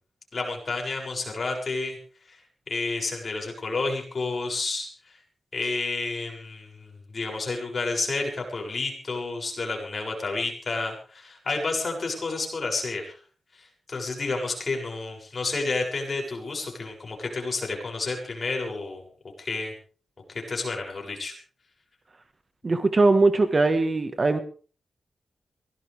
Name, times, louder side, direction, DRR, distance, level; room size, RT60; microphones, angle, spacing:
voice 1, 0.3-2.0 2.3-2.4 2.7-5.2 5.5-13.2 13.5-19.0 19.4-19.7 20.3-21.3, left 3 dB, 40° left, 7.2 m, -30 dB
voice 2, 22.6-24.4, right 3 dB, 35° right, 1.6 m, -20 dB
23.5 x 17.5 x 3.6 m
wide cardioid pair, 145°, 0 cm